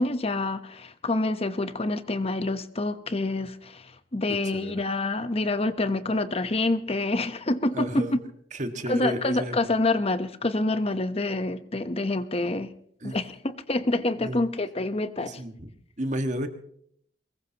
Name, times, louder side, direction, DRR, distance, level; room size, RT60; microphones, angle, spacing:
voice 1, 0.0-8.1 8.9-12.7 13.0-15.3, left 2 dB, 35° left, 11 dB, 1.0 m, -27 dB
voice 2, 4.3-4.9 7.7-8.2 8.5-9.7 13.0-13.2 14.2-14.4 15.2-15.7 16.0-16.5, right 1 dB, 40° right, 6 dB, 1.8 m, -32 dB
23.5 x 21.0 x 3.0 m, 0.65 s
head